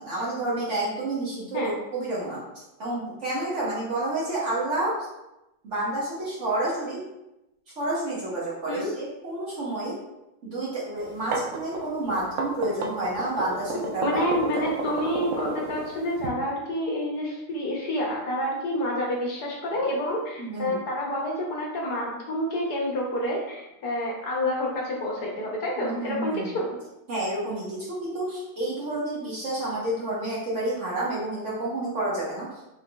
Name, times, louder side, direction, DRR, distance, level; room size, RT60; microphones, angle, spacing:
voice 1, 0.0-2.4 2.8-5.0 5.6-7.0 7.8-10.0 10.4-14.6 20.4-20.8 25.8-26.6 27.1-32.5, right 2 dB, 45° right, -6 dB, 1.2 m, -29 dB
sound 1, 11.0-16.3, right 3 dB, 70° right, 0.7 m, -31 dB
voice 2, 14.0-26.7, left 1 dB, 65° left, -2 dB, 1.3 m, -28 dB
4.9 x 3.6 x 2.2 m, 0.92 s
omnidirectional pair, 2.0 m